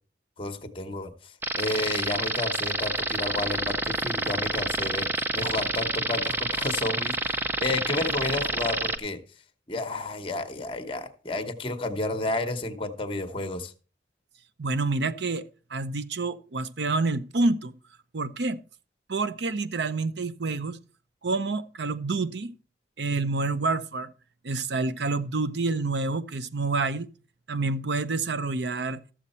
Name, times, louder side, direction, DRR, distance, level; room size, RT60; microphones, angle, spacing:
voice 1, 0.4-9.2 9.7-13.7, left 2 dB, 30° left, 1.0 m, -31 dB
sound 1, 1.4-9.0, right 2 dB, 10° right, 0.5 m, -28 dB
voice 2, 14.6-17.7 18.1-18.6 19.1-20.8 21.2-22.5 23.0-24.1 24.4-27.1 27.5-29.0, right 3 dB, 75° right, 0.7 m, -28 dB
13.5 x 7.2 x 4.3 m
head